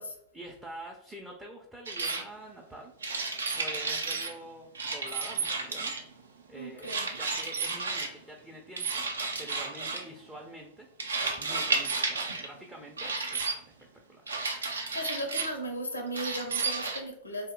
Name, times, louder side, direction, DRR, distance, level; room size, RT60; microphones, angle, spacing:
voice 1, 0.3-2.9 3.2-6.0 6.5-9.1 9.4-10.9 11.2-14.2, right 1 dB, 5° right, 0 dB, 0.4 m, -46 dB
sound 1, 1.9-2.2 3.0-4.3 4.7-6.1 6.8-8.1 8.8-10.1 11.0-12.5 13.0-13.5 14.3-15.6 16.1-17.0, right 4 dB, 70° right, 0.4 m, -32 dB
voice 2, 6.5-7.2 14.6-17.5, equal, 80° left, 5 dB, 0.5 m, -37 dB
2.6 x 2.1 x 3.7 m, 0.68 s
figure-of-eight pair, 90°, 0 cm